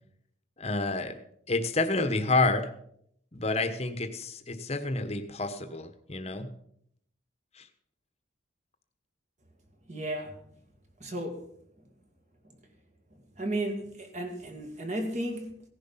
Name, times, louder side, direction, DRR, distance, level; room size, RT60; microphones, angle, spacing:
voice 1, 0.6-1.2 1.5-2.7 3.3-6.5 7.5-7.7, left 2 dB, 30° left, 8 dB, 1.3 m, -29 dB
voice 2, 9.9-10.3 11.0-11.5 12.4-12.5 13.1-15.6, right 1 dB, 35° right, 4 dB, 2.4 m, -34 dB
16.5 x 11.0 x 5.8 m, 0.70 s
head